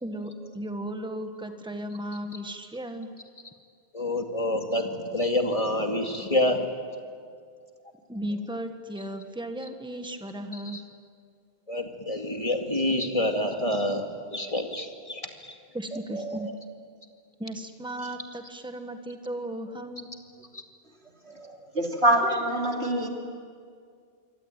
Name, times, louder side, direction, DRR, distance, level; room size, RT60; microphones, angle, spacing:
voice 1, 0.0-3.1 8.1-10.8 15.7-16.5 17.4-20.1, right 1 dB, 5° right, 6 dB, 1.6 m, -35 dB
voice 2, 3.9-6.7 10.7-10.8 11.7-14.0 14.3-15.5 16.1-16.5 21.3-21.7, left 1 dB, 35° left, 4 dB, 2.4 m, -28 dB
voice 3, 21.7-23.1, right 1 dB, 85° right, 2 dB, 3.4 m, -24 dB
27.0 x 24.0 x 9.2 m, 2.2 s
omnidirectional pair, 1.1 m